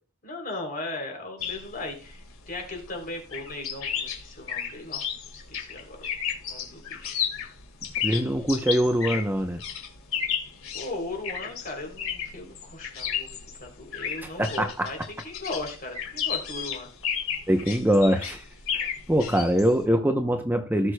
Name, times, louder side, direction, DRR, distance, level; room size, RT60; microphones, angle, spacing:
voice 1, 0.2-5.0 5.3-6.1 6.5-7.3 10.7-16.9, left 2 dB, 45° left, 2 dB, 3.2 m, -37 dB
sound 1, 1.4-19.8, left 8 dB, 80° left, 2.0 m, -33 dB
voice 2, 8.0-9.6 14.2-14.9 17.5-18.5 18.7-20.9, equal, 10° right, 5 dB, 0.7 m, -23 dB
17.5 x 6.5 x 2.2 m, 0.36 s
head